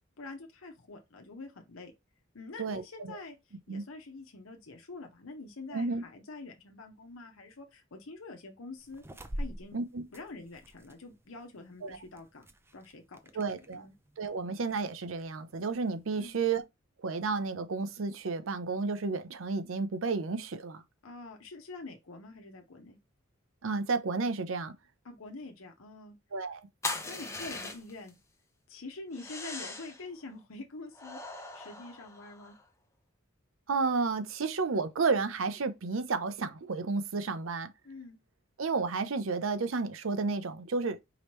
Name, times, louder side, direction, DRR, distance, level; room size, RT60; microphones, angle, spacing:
voice 1, 0.2-1.9 2.3-3.4 3.7-9.0 9.4-9.8 10.1-12.4 12.7-13.4 13.7-13.9 16.2-16.4 21.0-23.0 25.0-26.1 27.0-28.2 28.7-32.6 37.8-38.2, left 3 dB, 85° left, 1.0 m, -46 dB
voice 2, 2.6-3.2 3.7-3.8 5.7-6.0 9.7-10.0 11.8-12.0 13.3-13.9 14.2-16.6 17.0-20.8 23.6-24.7 26.3-26.6 33.7-37.7 38.6-41.0, right 4 dB, 75° right, 0.6 m, -32 dB
sound 1, 8.8-16.6, equal, 10° right, 0.5 m, -47 dB
sound 2, 26.8-28.1 29.1-30.0 30.9-32.6, left 3 dB, 15° left, 0.9 m, -40 dB
4.9 x 3.1 x 3.1 m
head